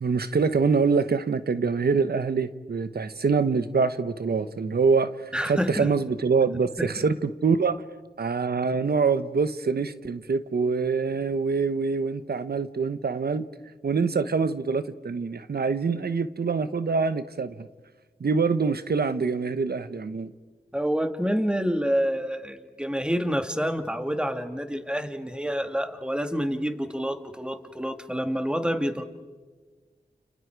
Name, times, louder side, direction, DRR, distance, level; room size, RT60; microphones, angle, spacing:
voice 1, 0.0-7.8 8.2-13.5 13.8-17.7 18.2-20.3, right 5 dB, 90° right, 12 dB, 1.0 m, -25 dB
voice 2, 5.3-5.9 6.8-6.9 20.7-29.0, equal, 5° right, 7 dB, 2.1 m, -28 dB
30.0 x 29.0 x 4.7 m, 1.4 s
cardioid pair, 45°, 16 cm